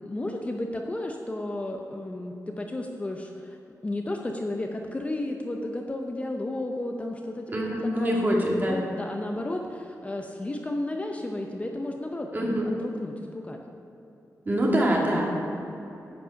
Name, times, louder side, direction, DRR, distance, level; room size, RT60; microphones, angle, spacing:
voice 1, 0.0-13.6, left 1 dB, 20° left, 2 dB, 0.7 m, -33 dB
voice 2, 7.5-8.8 12.3-12.7 14.5-15.3, equal, 30° right, -2 dB, 2.1 m, -24 dB
11.0 x 8.2 x 5.7 m, 3.0 s
wide cardioid pair, 150°, 6 cm